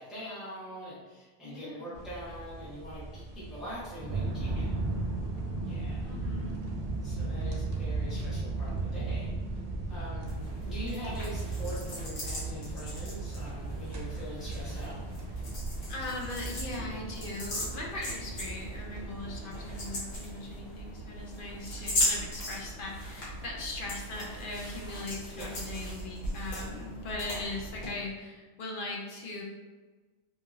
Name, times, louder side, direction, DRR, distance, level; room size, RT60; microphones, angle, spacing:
voice 1, 0.0-4.7 5.6-6.0 7.0-9.3 9.9-10.2 10.6-15.0 25.3-25.5, equal, ahead, -11 dB, 0.9 m, -43 dB
voice 2, 1.4-1.9 6.0-6.5 15.9-29.4, left 2 dB, 60° left, -1 dB, 0.6 m, -39 dB
sound 1, 1.9-19.9, right 3 dB, 60° right, 0.7 m, -36 dB
sound 2, 10.2-27.9, equal, 80° left, 1.3 m, -38 dB
2.7 x 2.7 x 2.5 m, 1.3 s
omnidirectional pair, 1.2 m